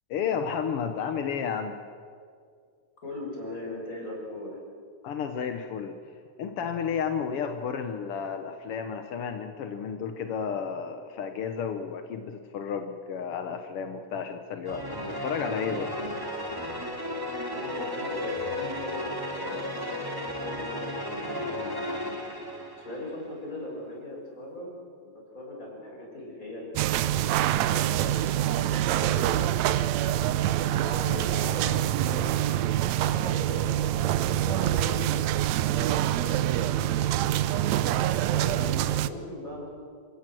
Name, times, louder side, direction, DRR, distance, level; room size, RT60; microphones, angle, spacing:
voice 1, 0.1-1.8 5.0-6.0 6.4-15.9, left 7 dB, 65° left, 6 dB, 1.4 m, -32 dB
voice 2, 3.0-4.6 17.5-21.9 22.8-29.4 30.5-35.2 35.5-36.9 38.3-39.7, left 1 dB, 25° left, -2 dB, 6.4 m, -40 dB
sound 1, 14.6-23.2, left 1 dB, 10° right, 2.0 m, -34 dB
sound 2, 26.8-39.1, right 12 dB, 80° right, 1.6 m, -25 dB
28.0 x 16.5 x 7.7 m, 2.2 s
omnidirectional pair, 3.9 m